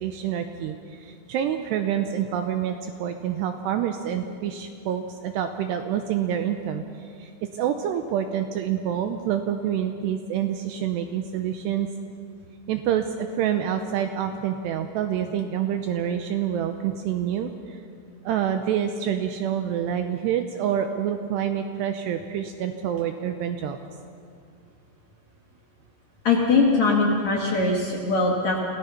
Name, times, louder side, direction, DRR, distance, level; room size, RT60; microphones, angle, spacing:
voice 1, 0.0-11.9 12.7-17.8 18.2-23.8, right 9 dB, 80° right, 6 dB, 2.6 m, -27 dB
voice 2, 26.2-28.6, left 3 dB, 55° left, -2 dB, 2.2 m, -21 dB
27.0 x 17.0 x 5.8 m, 2.3 s
omnidirectional pair, 5.5 m